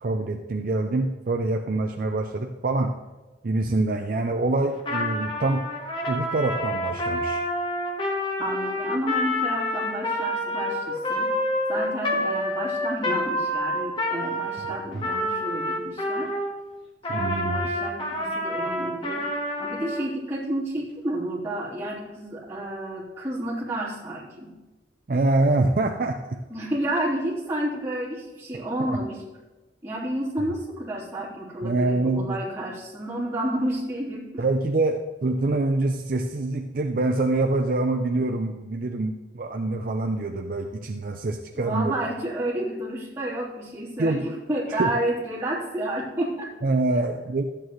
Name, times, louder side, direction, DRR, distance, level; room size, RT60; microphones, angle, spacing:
voice 1, 0.0-2.9 3.4-5.6 6.1-7.4 14.9-15.0 17.1-17.7 25.1-26.4 31.6-32.4 34.4-41.9 44.0-44.2 44.8-44.9 46.6-47.4, right 2 dB, 50° right, 5 dB, 0.5 m, -25 dB
Trumpet, 4.8-16.5 17.0-20.0, left 1 dB, 30° left, 1.3 m, -28 dB
voice 2, 8.4-11.3 11.7-16.3 17.1-19.2 19.6-24.5 26.5-29.2 29.8-34.4 41.6-46.5, right 1 dB, 15° right, -9 dB, 3.4 m, -30 dB
13.0 x 8.7 x 3.1 m, 1.2 s
head